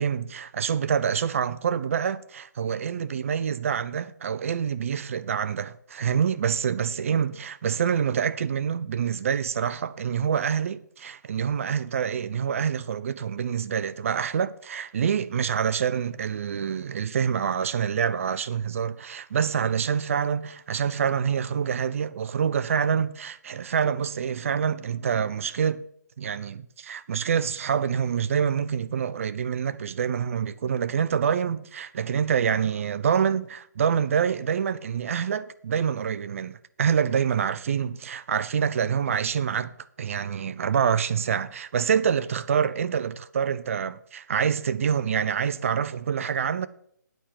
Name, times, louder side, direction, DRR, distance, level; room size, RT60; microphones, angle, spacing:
voice 1, 0.0-25.8 26.2-39.7 40.0-46.7, right 7 dB, 45° right, 0.5 m, -26 dB
9.1 x 5.7 x 8.2 m
hypercardioid pair, 155°, 10 cm